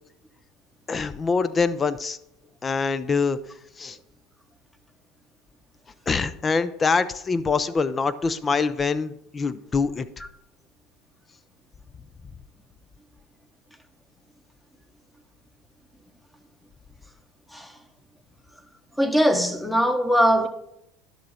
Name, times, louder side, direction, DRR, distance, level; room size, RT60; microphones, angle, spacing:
voice 1, 0.9-2.2 2.6-3.4 3.8-4.0 6.1-10.1, left 4 dB, 25° left, 0.6 m, -24 dB
voice 2, 19.0-20.5, equal, 5° left, 1.1 m, -21 dB
10.5 x 6.4 x 4.3 m
hypercardioid pair, 90°, 0 cm